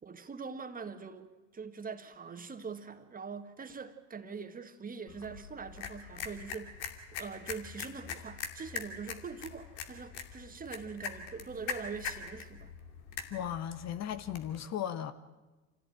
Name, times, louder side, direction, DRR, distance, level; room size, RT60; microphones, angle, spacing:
voice 1, 0.0-6.8 7.2-12.7, right 5 dB, 25° right, 8 dB, 1.9 m, -43 dB
sound 1, 5.1-14.6, left 7 dB, 65° left, 2.7 m, -43 dB
voice 2, 13.3-15.1, left 10 dB, 45° left, 12 dB, 1.4 m, -36 dB
26.0 x 16.0 x 9.2 m, 1.2 s
hypercardioid pair, 85°, 37 cm